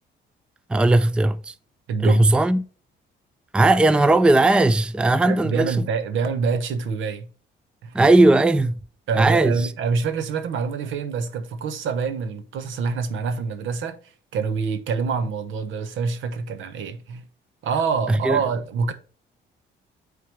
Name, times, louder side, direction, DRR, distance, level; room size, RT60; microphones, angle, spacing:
voice 1, 0.7-1.5 2.0-2.6 3.5-5.8 7.9-8.8 9.2-9.7 18.1-18.4, right 2 dB, 5° right, 0.4 m, -17 dB
voice 2, 1.9-2.2 5.2-7.3 7.8-8.0 9.1-14.0 14.3-17.3 17.6-18.9, right 5 dB, 80° right, 0.9 m, -26 dB
8.9 x 3.7 x 3.2 m
cardioid pair, 90°, 20 cm